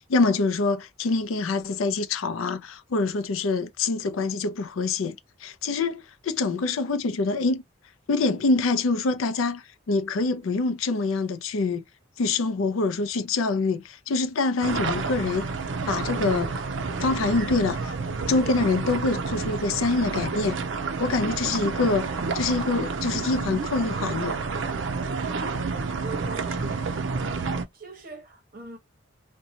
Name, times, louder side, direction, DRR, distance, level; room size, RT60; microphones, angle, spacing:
voice 1, 0.0-5.2 5.4-7.6 8.1-11.8 12.2-15.5 15.9-16.6 17.0-17.9 18.3-20.6 21.0-22.1 22.3-24.4, left 3 dB, 90° left, 0.5 m, -25 dB
sound 1, 14.6-27.6, right 4 dB, 65° right, 0.5 m, -29 dB
voice 2, 25.6-26.7 27.1-28.8, right 3 dB, 45° right, 1.0 m, -42 dB
2.7 x 2.2 x 2.7 m
head